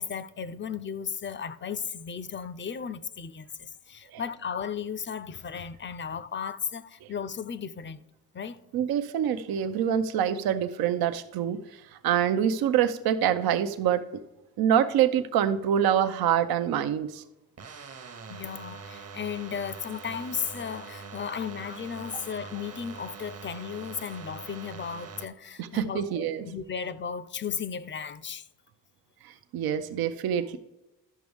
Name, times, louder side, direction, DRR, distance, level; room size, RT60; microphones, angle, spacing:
voice 1, 0.0-8.0 8.3-8.6 18.3-28.5, left 7 dB, 30° left, 0.5 m, -35 dB
voice 2, 8.7-14.0 14.6-17.2 25.6-26.4 29.2-30.6, right 9 dB, 80° right, 0.6 m, -26 dB
sound 1, 17.6-25.3, right 5 dB, 45° right, 0.9 m, -43 dB
11.0 x 6.1 x 3.5 m
cardioid pair, 75°, 36 cm